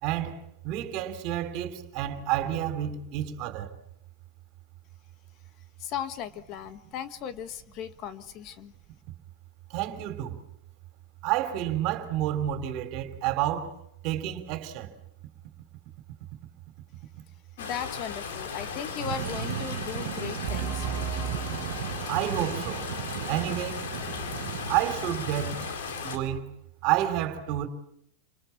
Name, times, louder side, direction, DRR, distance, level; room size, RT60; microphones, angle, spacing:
voice 1, 0.0-3.7 9.7-10.4 11.2-13.7 14.0-14.9 22.1-22.8 23.3-23.9 24.7-25.6 26.0-26.5 26.8-27.7, right 12 dB, 50° right, 3.2 m, -29 dB
voice 2, 5.8-8.7 17.6-20.9, left 8 dB, 45° left, 1.5 m, -37 dB
sound 1, 17.6-26.2, left 6 dB, 85° left, 3.9 m, -36 dB
sound 2, 18.9-26.3, right 14 dB, 70° right, 1.0 m, -37 dB
sound 3, 20.5-25.7, right 8 dB, 25° right, 6.7 m, -39 dB
28.5 x 20.0 x 7.3 m
supercardioid pair, 135°, 0 cm